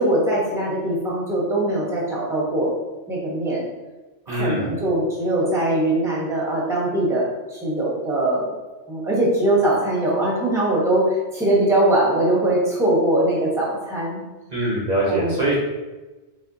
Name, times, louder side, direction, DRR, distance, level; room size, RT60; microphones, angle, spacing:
voice 1, 0.0-2.7 3.1-3.6 4.3-8.5 8.9-14.2 15.1-15.4, right 1 dB, 5° right, -5 dB, 0.9 m, -21 dB
voice 2, 4.3-4.7 14.5-15.5, right 1 dB, 40° right, -6 dB, 0.9 m, -23 dB
4.2 x 3.4 x 2.7 m, 1.2 s
omnidirectional pair, 1.2 m